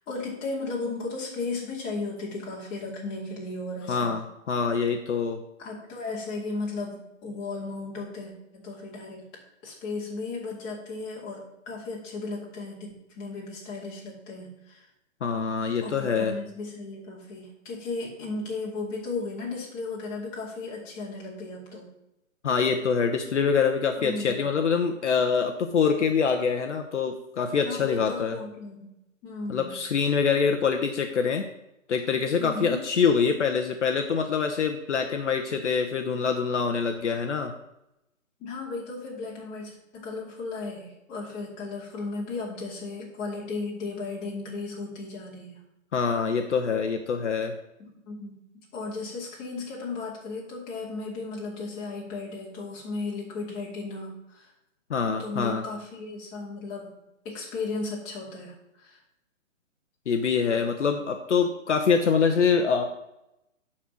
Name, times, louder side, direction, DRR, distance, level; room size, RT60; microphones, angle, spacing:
voice 1, 0.1-4.1 5.6-9.3 9.6-14.9 15.8-21.9 24.0-24.5 27.6-29.7 30.0-30.2 32.4-32.8 38.4-45.5 47.8-48.4 48.7-54.5 55.2-56.9 57.2-59.0, left 3 dB, 20° left, -3 dB, 2.6 m, -35 dB
voice 2, 3.9-5.4 15.2-16.3 22.4-28.4 29.5-31.4 31.9-37.5 45.9-47.5 54.9-55.6 60.1-62.8, left 6 dB, 60° left, 5 dB, 1.1 m, -25 dB
11.0 x 4.4 x 6.2 m, 0.87 s
hypercardioid pair, 150°, 39 cm